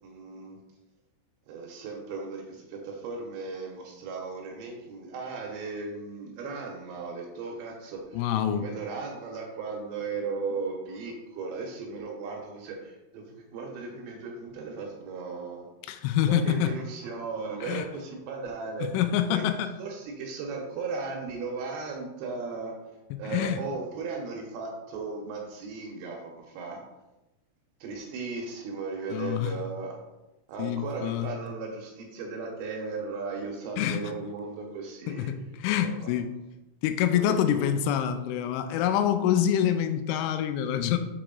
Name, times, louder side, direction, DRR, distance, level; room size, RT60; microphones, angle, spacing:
voice 1, 0.0-0.6 1.5-15.7 16.3-18.9 19.3-19.4 19.8-22.7 23.2-26.8 27.8-30.0 30.5-35.3 35.8-36.1 37.1-37.7, right 4 dB, 75° right, 1 dB, 2.9 m, -36 dB
voice 2, 8.1-8.7 15.9-16.8 17.6-17.9 18.8-19.7 23.3-23.6 29.1-29.5 30.6-31.3 33.8-34.0 35.1-36.3 36.8-41.0, left 10 dB, 85° left, 8 dB, 3.0 m, -26 dB
7.1 x 4.8 x 3.8 m, 1.0 s
omnidirectional pair, 5.6 m